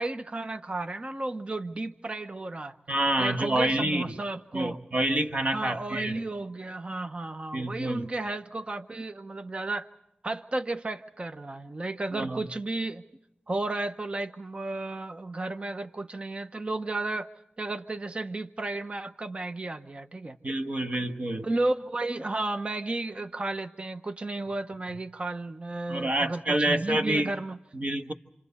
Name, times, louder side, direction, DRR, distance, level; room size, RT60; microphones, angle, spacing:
voice 1, 0.0-2.8 3.2-4.8 5.5-9.9 10.2-13.0 13.5-17.3 17.6-20.4 21.4-26.4 26.7-27.6, right 2 dB, 35° right, 0.8 m, -33 dB
voice 2, 2.9-4.2 4.5-6.1 7.5-8.0 12.1-12.4 20.4-21.5 25.9-27.3 27.7-28.1, right 1 dB, 55° right, 1.3 m, -27 dB
28.5 x 27.5 x 4.2 m
wide cardioid pair, 95°, 3 cm